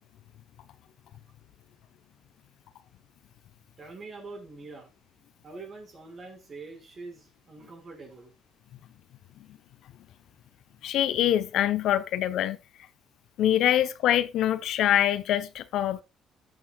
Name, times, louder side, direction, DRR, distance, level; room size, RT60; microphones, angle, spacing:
voice 1, 3.8-4.9 5.4-8.3, right 3 dB, 40° right, 5.1 m, -44 dB
voice 2, 10.8-12.6 13.4-16.0, left 11 dB, 70° left, 0.9 m, -24 dB
14.0 x 9.2 x 2.4 m
cardioid pair, 125°, 0 cm